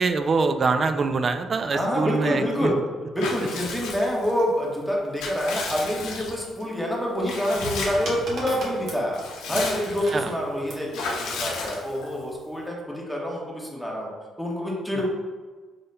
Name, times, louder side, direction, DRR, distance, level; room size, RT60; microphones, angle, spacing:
voice 1, 0.0-2.7 10.1-10.3, right 4 dB, 40° right, 9 dB, 0.3 m, -24 dB
voice 2, 1.7-2.8 3.1-9.2 9.5-14.1 14.4-15.1, equal, ahead, -3 dB, 1.2 m, -27 dB
Water / Bathtub (filling or washing) / Liquid, 3.2-4.4 4.9-6.6 7.3-8.2 8.6-8.7 9.0-10.2 10.9-12.2, left 4 dB, 85° left, 0.6 m, -33 dB
sound 1, 7.2-10.9 11.9-12.3, right 1 dB, 65° right, 1.2 m, -37 dB
5.3 x 3.5 x 2.2 m, 1.4 s
cardioid pair, 80°, 0 cm